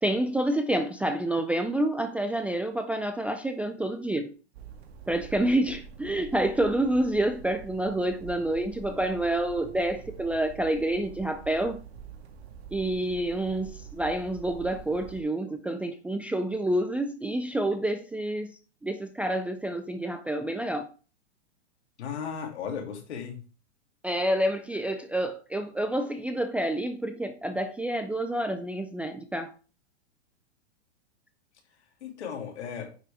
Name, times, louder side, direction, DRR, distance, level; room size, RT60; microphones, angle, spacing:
voice 1, 0.0-4.3 5.1-11.8 12.7-20.9 24.0-29.5, right 1 dB, 5° right, 0.4 m, -28 dB
sound 1, 4.5-15.2, right 7 dB, 65° right, 1.9 m, -46 dB
voice 2, 22.0-23.4 32.0-32.9, left 7 dB, 75° left, 3.1 m, -35 dB
9.4 x 6.1 x 3.5 m
hypercardioid pair, 125°, 34 cm